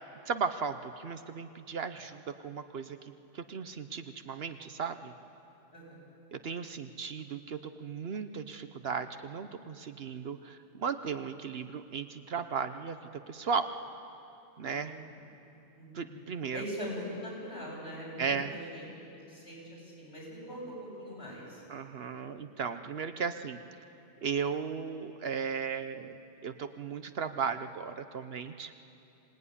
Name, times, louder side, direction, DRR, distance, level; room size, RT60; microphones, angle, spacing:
voice 1, 0.3-3.0 3.3-5.1 6.3-13.0 13.3-13.7 14.6-14.9 15.9-16.6 18.2-18.5 21.7-23.6 24.2-26.1 26.4-28.7, right 6 dB, 60° right, 9 dB, 1.0 m, -36 dB
voice 2, 14.6-15.3 15.7-16.2 16.5-18.9 19.3-21.6, equal, 60° left, -5 dB, 8.5 m, -42 dB
25.0 x 18.0 x 9.8 m, 2.8 s
omnidirectional pair, 1.2 m